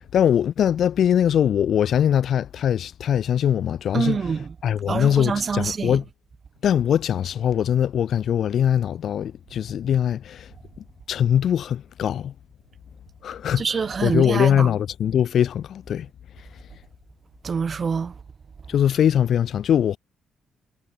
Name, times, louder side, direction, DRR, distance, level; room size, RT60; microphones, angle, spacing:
voice 1, 0.0-4.2 4.6-6.0 6.6-10.5 11.1-12.3 13.2-13.6 14.0-16.1 18.7-20.0, left 9 dB, 65° left, 2.1 m, -21 dB
voice 2, 3.9-4.5 4.9-6.0 13.6-14.7 17.4-18.2, right 5 dB, 40° right, 1.6 m, -25 dB
cardioid pair, 90°, 0 cm